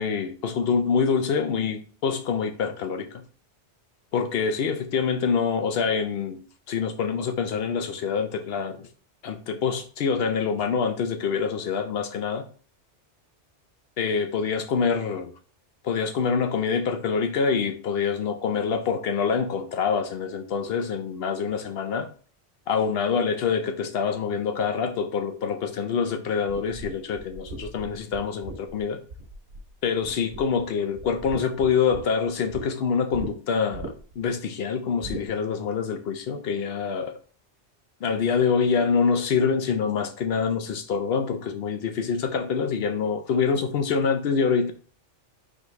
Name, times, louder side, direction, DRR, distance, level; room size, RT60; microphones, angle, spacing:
voice 1, 0.0-3.2 4.1-6.4 6.7-8.9 9.2-12.4 14.0-15.3 15.8-22.1 22.7-29.0 29.8-37.1 38.0-44.7, left 6 dB, 65° left, 0.7 m, -26 dB
sound 1, 26.5-29.7 30.0-30.6 30.9-32.6 33.1-33.3 33.7-34.2 35.0-35.3, right 3 dB, 60° right, 1.1 m, -38 dB
4.1 x 3.0 x 3.1 m
omnidirectional pair, 1.2 m